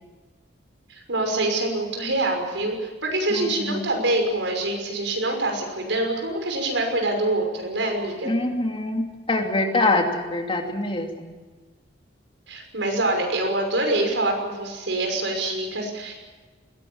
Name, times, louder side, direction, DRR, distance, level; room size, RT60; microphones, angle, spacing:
voice 1, 0.9-8.3 12.5-16.1, right 2 dB, 90° right, 3 dB, 5.9 m, -25 dB
voice 2, 3.3-3.9 8.2-11.3, left 2 dB, 30° left, 2 dB, 2.8 m, -25 dB
21.0 x 17.5 x 8.8 m, 1.3 s
head